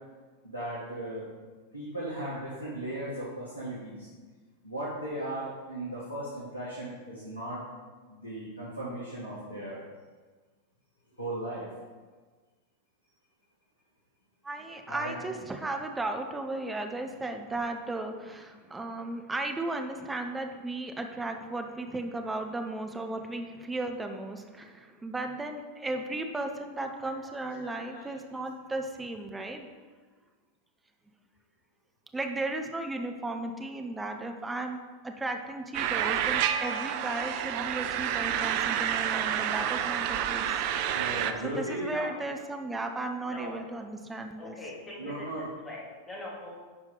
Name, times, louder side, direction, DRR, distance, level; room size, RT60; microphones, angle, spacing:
voice 1, 0.4-1.3 1.7-4.1 4.6-7.6 8.1-9.8 11.2-11.7 14.9-15.2 27.0-28.2 40.9-41.9 43.3-43.5 45.0-45.4, right 1 dB, 80° left, -7 dB, 1.5 m, -37 dB
voice 2, 14.4-29.7 32.1-40.5 41.4-44.6, right 2 dB, 10° right, 4 dB, 0.8 m, -35 dB
sound 1, 35.7-41.3, right 9 dB, 45° right, 0.5 m, -29 dB
voice 3, 41.2-41.5 41.9-42.1 43.2-43.6 44.4-45.3 45.6-46.6, left 1 dB, 20° left, -4 dB, 2.5 m, -42 dB
10.5 x 4.5 x 3.9 m, 1.4 s
figure-of-eight pair, 90°, 0 cm